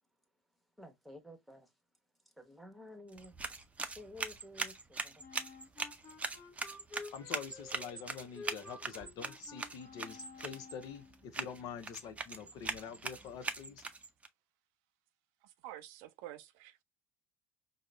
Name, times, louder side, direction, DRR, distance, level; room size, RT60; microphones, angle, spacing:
voice 1, 0.8-1.7 2.4-3.6 4.0-5.2, left 1 dB, ahead, 1.1 m, -52 dB
sound 1, 3.1-14.3, right 3 dB, 20° right, 0.5 m, -42 dB
Wind instrument woodwind instrument, 5.2-11.2, left 3 dB, 30° left, 0.8 m, -52 dB
voice 2, 7.1-13.8, left 7 dB, 60° left, 0.6 m, -46 dB
voice 3, 15.4-16.8, right 13 dB, 65° right, 0.4 m, -49 dB
4.9 x 2.0 x 2.3 m
hypercardioid pair, 60°, 7 cm